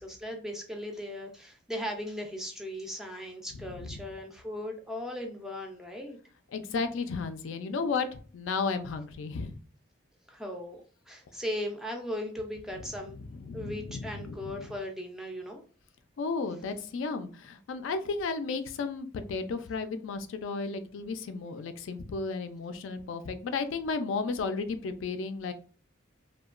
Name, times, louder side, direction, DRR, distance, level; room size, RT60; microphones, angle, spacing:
voice 1, 0.0-6.2 10.3-10.8 11.1-13.2 13.5-15.6, left 1 dB, ahead, 2 dB, 0.3 m, -38 dB
voice 2, 6.5-8.1 8.3-9.6 13.5-14.6 16.2-25.5, left 4 dB, 75° left, 9 dB, 0.3 m, -33 dB
2.8 x 2.2 x 2.4 m, 0.41 s
head